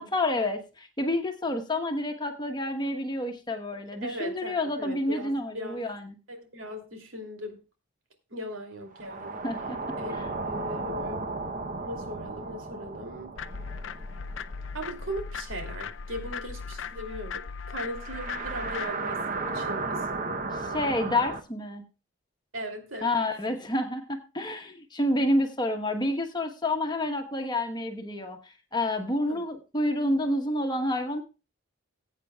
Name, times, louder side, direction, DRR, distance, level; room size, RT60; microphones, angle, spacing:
voice 1, 0.0-6.1 9.4-10.3 20.5-21.8 23.0-31.2, left 1 dB, 20° left, 5 dB, 1.1 m, -29 dB
voice 2, 4.0-5.8 6.3-7.6 8.3-9.4 10.0-11.3 11.7-13.3 14.7-19.2 19.5-20.1 22.5-23.1 29.3-29.4, equal, 90° right, 3 dB, 2.8 m, -38 dB
sound 1, 8.9-15.5 15.8-15.9 17.9-21.4, right 3 dB, 40° right, 0.8 m, -35 dB
sound 2, 13.4-18.9, left 5 dB, 70° left, 0.5 m, -38 dB
20.0 x 8.3 x 2.3 m, 0.31 s
head